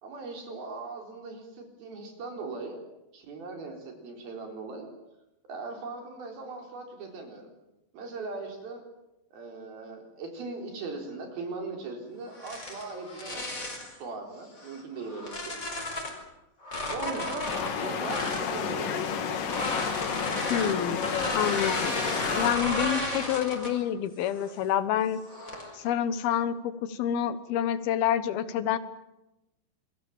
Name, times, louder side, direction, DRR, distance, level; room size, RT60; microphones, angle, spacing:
voice 1, 0.0-2.8 3.1-4.9 5.5-7.5 7.9-8.8 9.3-15.6 16.9-19.4, right 3 dB, 75° right, 3 dB, 5.9 m, -39 dB
sound 1, 12.3-13.9 14.6-16.2 16.6-18.5 19.4-23.9 24.3-24.6 25.3-25.8, left 2 dB, 20° left, 4.9 m, -34 dB
sound 2, 17.5-22.5, left 6 dB, 65° left, 3.3 m, -31 dB
voice 2, 20.5-21.1 21.3-22.0 22.4-25.2 25.7-28.8, left 10 dB, 80° left, 13 dB, 3.1 m, -28 dB
28.5 x 22.0 x 7.4 m, 0.93 s
omnidirectional pair, 4.4 m